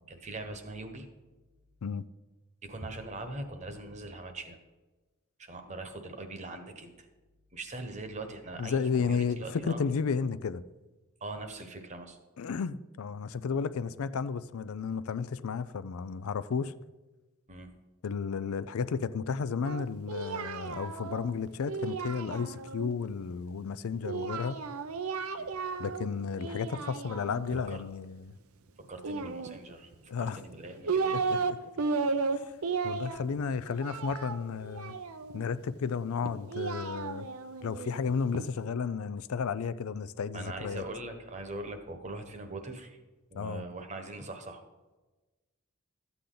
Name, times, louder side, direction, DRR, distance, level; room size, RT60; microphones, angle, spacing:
voice 1, 0.1-1.1 2.6-4.6 5.4-7.1 7.5-9.8 11.2-12.2 17.5-17.7 25.4-25.5 27.5-27.8 28.9-31.2 40.3-43.0 43.3-44.6, right 2 dB, 35° right, 1.1 m, -41 dB
voice 2, 8.6-10.6 12.4-16.7 18.0-24.6 25.8-28.3 30.1-30.4 31.1-31.6 32.8-35.0 35.3-37.3 37.6-40.8 43.4-43.6, left 5 dB, 80° left, 0.4 m, -33 dB
Singing, 19.6-22.9 24.0-26.1 26.4-27.6 29.0-29.9 30.5-31.5 31.8-35.4 36.2-38.5, right 4 dB, 80° right, 0.6 m, -34 dB
13.0 x 8.4 x 3.9 m
head